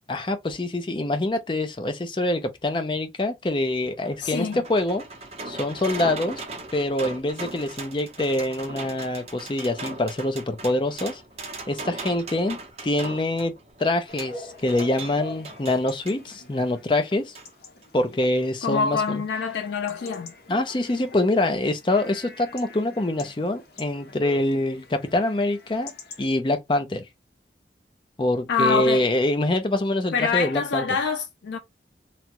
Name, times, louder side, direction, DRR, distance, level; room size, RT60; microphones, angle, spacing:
voice 1, 0.1-5.0 5.5-6.4 6.7-11.2 11.7-13.5 13.8-17.3 17.9-19.2 20.5-25.9 26.2-27.0 28.2-30.8, left 1 dB, 30° left, 0.4 m, -25 dB
sound 1, 3.7-16.2 17.4-17.5 17.8-17.9, right 3 dB, 35° right, 0.7 m, -39 dB
voice 2, 4.2-4.6 18.6-20.3 28.5-29.1 30.1-31.6, left 5 dB, 85° left, 0.4 m, -25 dB
Chatter / Bark / Livestock farm animals working animals, 14.1-26.3, left 3 dB, 60° left, 0.8 m, -44 dB
3.0 x 2.2 x 2.8 m
head